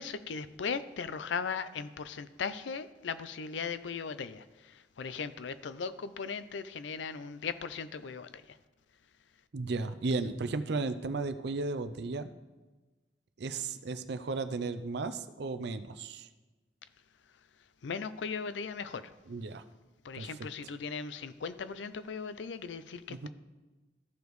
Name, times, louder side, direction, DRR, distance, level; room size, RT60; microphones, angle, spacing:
voice 1, 0.0-8.6 17.8-19.1 20.0-23.3, left 5 dB, 80° left, 13 dB, 0.5 m, -38 dB
voice 2, 9.5-12.3 13.4-16.3 19.3-19.6 20.1-20.3 23.1-23.3, right 3 dB, 65° right, 10 dB, 0.5 m, -34 dB
14.0 x 5.1 x 3.1 m, 1.2 s
head